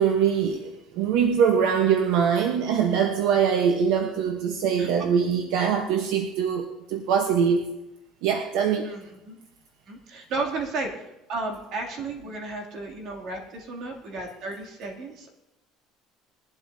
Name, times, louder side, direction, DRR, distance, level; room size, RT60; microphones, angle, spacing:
voice 1, 0.0-7.6 8.2-8.9, right 7 dB, 80° right, 4 dB, 1.1 m, -23 dB
voice 2, 8.8-9.4 9.9-15.3, right 3 dB, 55° right, 0 dB, 2.8 m, -33 dB
21.0 x 11.5 x 2.8 m, 0.94 s
cardioid pair, 140°, 0 cm